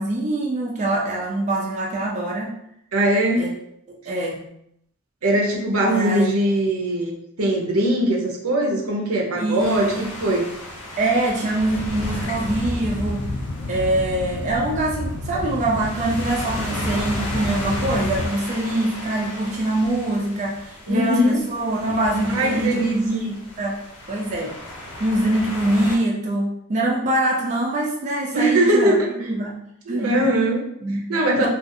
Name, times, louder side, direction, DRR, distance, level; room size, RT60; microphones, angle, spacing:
voice 1, 0.0-2.5 3.4-3.6 3.9-4.4 5.9-6.3 9.4-10.0 11.0-13.3 13.7-23.8 24.1-24.6 25.0-29.6 29.9-30.3 30.8-31.5, right 1 dB, 35° right, -3 dB, 0.4 m, -24 dB
voice 2, 2.9-3.5 5.2-10.5 20.9-21.4 22.3-23.2 28.3-29.1 29.9-30.6 31.1-31.5, right 1 dB, 80° right, -1 dB, 0.6 m, -21 dB
sound 1, 9.6-26.0, left 1 dB, 90° left, 0.9 m, -36 dB
sound 2, 11.6-18.3, left 2 dB, 65° left, 0.4 m, -30 dB
2.5 x 2.4 x 2.6 m, 0.74 s
head